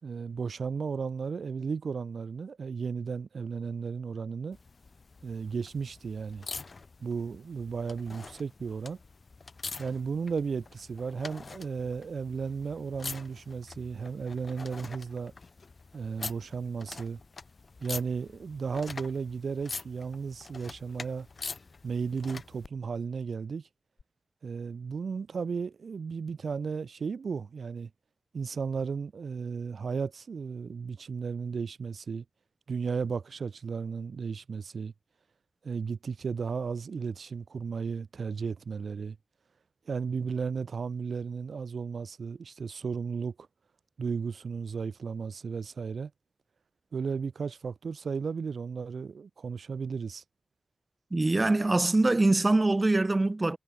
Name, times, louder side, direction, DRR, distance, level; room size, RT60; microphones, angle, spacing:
voice 1, 0.0-4.6 5.2-6.4 7.0-9.0 9.8-15.3 15.9-17.2 17.8-21.3 21.8-23.6 24.4-27.9 28.3-32.2 32.7-34.9 35.6-39.2 39.9-43.3 44.0-46.1 46.9-50.2, right 5 dB, 90° right, 2.8 m, -34 dB
sound 1, 4.5-22.7 24.0-24.1, left 4 dB, 50° left, 2.5 m, -45 dB
voice 2, 51.1-53.6, right 2 dB, 30° right, 0.3 m, -24 dB
wide cardioid pair, 105°, 0 cm